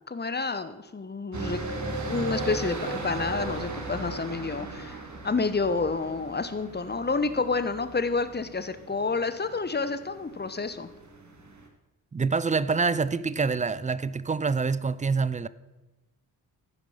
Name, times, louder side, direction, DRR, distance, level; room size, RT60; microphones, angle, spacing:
voice 1, 0.1-5.0 5.2-10.9, left 4 dB, 25° left, 1.0 m, -29 dB
sound 1, 1.3-11.7, right 2 dB, 45° right, 1.9 m, -37 dB
voice 2, 12.1-15.5, right 4 dB, 20° right, 0.5 m, -26 dB
14.0 x 5.1 x 5.7 m
supercardioid pair, 45°, 39 cm